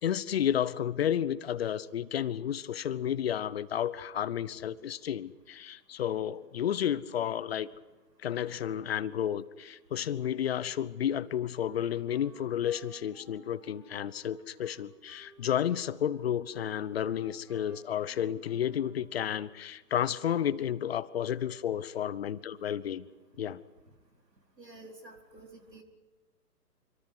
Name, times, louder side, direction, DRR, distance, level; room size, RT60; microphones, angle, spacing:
voice 1, 0.0-7.7 8.2-23.1 23.4-23.6, left 10 dB, 40° left, 17 dB, 1.0 m, -32 dB
Wind instrument woodwind instrument, 11.6-19.2, right 4 dB, 5° right, 5.2 m, -59 dB
voice 2, 24.6-25.8, right 2 dB, 90° right, 3 dB, 4.6 m, -50 dB
26.5 x 24.5 x 6.2 m, 1.2 s
figure-of-eight pair, 135°, 48 cm